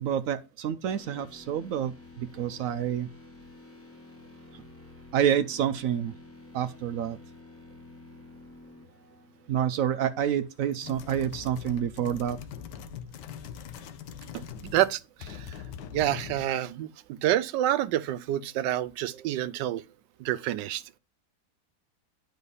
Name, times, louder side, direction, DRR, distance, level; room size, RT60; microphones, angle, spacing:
voice 1, 0.0-3.1 5.1-6.1 6.5-7.2 9.5-12.4, right 9 dB, 70° right, 0.8 m, -28 dB
sound 1, 0.8-10.8, left 2 dB, 10° left, 0.8 m, -51 dB
sound 2, 10.7-14.9 15.2-16.5, left 8 dB, 85° left, 1.4 m, -42 dB
voice 2, 14.6-15.4 15.9-19.8 20.2-21.0, right 13 dB, 90° right, 1.2 m, -28 dB
9.8 x 4.2 x 5.4 m
omnidirectional pair, 1.9 m